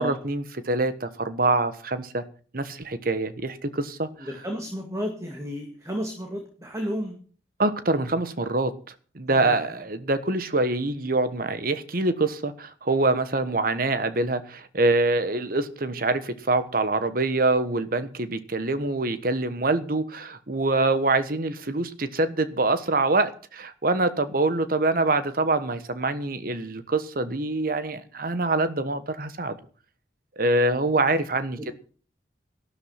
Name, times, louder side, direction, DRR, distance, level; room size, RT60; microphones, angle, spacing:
voice 1, 0.0-2.2 2.5-4.3 7.6-8.7 9.1-29.6 30.4-31.7, right 2 dB, 55° right, 12 dB, 1.3 m, -25 dB
voice 2, 4.2-7.2 9.3-9.8 31.6-31.7, equal, 20° right, 3 dB, 2.0 m, -32 dB
12.5 x 11.5 x 5.8 m, 0.42 s
head